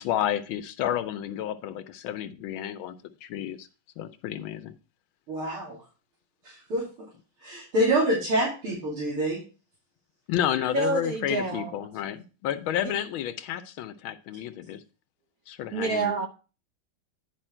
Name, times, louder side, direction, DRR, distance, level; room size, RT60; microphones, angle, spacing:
voice 1, 0.0-2.9 3.2-3.7 4.0-4.7 10.3-14.8 15.5-16.1, left 11 dB, 75° left, 1.4 m, -31 dB
voice 2, 5.3-5.8 6.4-7.1 7.4-9.4, right 1 dB, 85° right, 3.6 m, -26 dB
voice 3, 10.7-11.7 15.7-16.3, right 3 dB, 65° right, 0.9 m, -27 dB
9.9 x 5.0 x 4.4 m
omnidirectional pair, 2.4 m